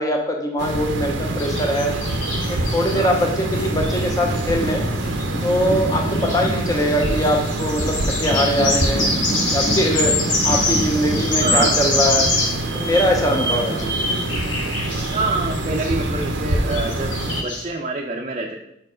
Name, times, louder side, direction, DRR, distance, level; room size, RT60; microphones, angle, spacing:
voice 1, 0.0-2.0 2.5-4.8 5.4-9.1 9.5-10.2 10.4-12.3 12.7-14.0, equal, 20° left, 1 dB, 0.7 m, -22 dB
sound 1, 0.6-17.4, right 1 dB, 75° right, 0.7 m, -26 dB
sound 2, 1.2-11.7, equal, 60° left, 1.9 m, -29 dB
sound 3, 1.4-3.2 3.5-3.6 3.8-4.1 4.4-4.5 5.1-5.5 5.9-17.6, left 2 dB, 80° left, 2.2 m, -25 dB
voice 2, 5.9-6.3 10.5-10.6 11.4-11.8 13.4-14.4 15.1-18.6, right 3 dB, 35° right, -1 dB, 0.5 m, -27 dB
5.2 x 4.6 x 4.9 m, 0.78 s
head